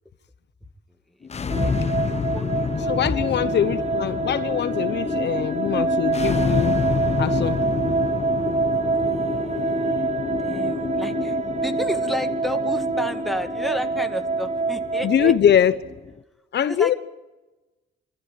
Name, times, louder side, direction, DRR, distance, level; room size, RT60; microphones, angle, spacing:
sound 1, 1.2-16.2, left 5 dB, 35° left, 0.9 m, -29 dB
sound 2, 1.5-15.4, right 4 dB, 35° right, 1.8 m, -26 dB
voice 1, 2.1-2.7 3.0-3.1 9.0-10.0 10.4-15.3 16.7-17.0, left 1 dB, ahead, 2.4 m, -31 dB
voice 2, 2.9-6.8 7.2-7.6 15.0-15.8 16.5-16.9, left 9 dB, 60° left, 1.0 m, -22 dB
26.5 x 15.0 x 9.4 m
cardioid pair, 90°, 20 cm